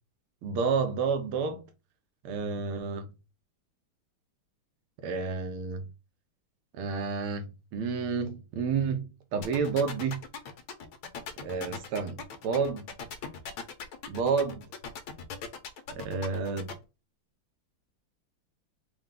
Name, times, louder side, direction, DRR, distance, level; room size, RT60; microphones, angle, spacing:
voice 1, 0.4-1.6 2.2-3.1 5.0-5.8 6.7-10.2 11.4-12.9 14.1-14.6 15.9-16.7, right 5 dB, 80° right, 1.7 m, -30 dB
sound 1, 9.4-16.7, left 6 dB, 75° left, 1.6 m, -39 dB
4.5 x 2.4 x 3.6 m
omnidirectional pair, 2.4 m